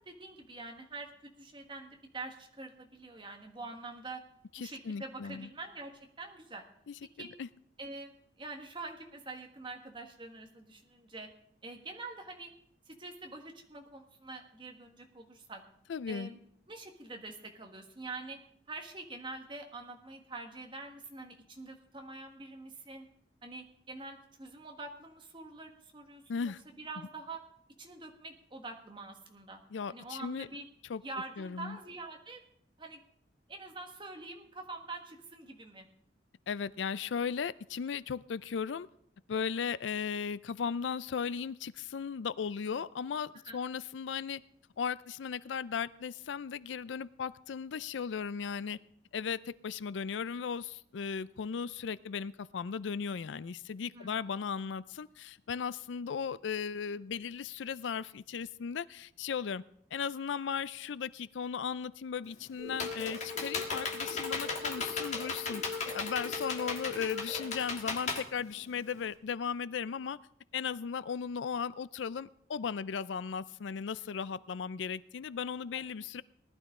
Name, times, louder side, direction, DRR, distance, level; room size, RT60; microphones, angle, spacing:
voice 1, 0.0-4.2 4.6-6.7 7.2-7.3 7.8-11.3 11.6-12.5 12.9-15.6 16.1-16.4 16.7-18.4 18.7-23.1 23.4-27.4 27.8-29.6 29.9-30.7 31.0-32.4 32.8-33.0 33.5-35.9 43.4-43.6 53.9-54.3 64.6-64.7 75.7-75.9, right 3 dB, 25° right, 3 dB, 1.5 m, -45 dB
voice 2, 4.6-5.5 6.9-7.0 7.4-7.5 15.9-16.3 26.3-26.6 29.7-30.5 30.9-31.0 31.4-31.8 36.5-38.9 39.3-44.4 44.8-48.8 49.1-59.6 59.9-70.2 70.5-76.2, left 6 dB, 90° left, 18 dB, 0.4 m, -36 dB
Computer keyboard, 62.2-69.1, left 4 dB, 40° left, 1.5 m, -37 dB
sound 1, 62.6-67.6, left 4 dB, ahead, 7.7 m, -41 dB
19.0 x 12.0 x 3.7 m, 0.69 s
head